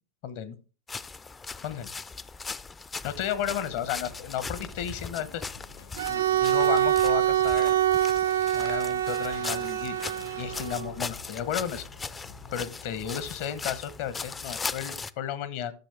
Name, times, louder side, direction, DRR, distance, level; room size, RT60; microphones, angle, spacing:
voice 1, 0.2-0.6 1.6-1.9 3.0-5.4 6.1-7.7 8.5-11.8 12.5-15.7, left 9 dB, 55° left, 14 dB, 1.0 m, -33 dB
sound 1, 0.9-15.1, left 4 dB, 20° left, 0.4 m, -39 dB
sound 2, 3.4-13.4, left 5 dB, 75° left, 1.5 m, -49 dB
Bowed string instrument, 6.0-10.9, right 12 dB, 70° right, 0.4 m, -25 dB
12.0 x 6.4 x 3.4 m, 0.35 s
hypercardioid pair, 95°, 0 cm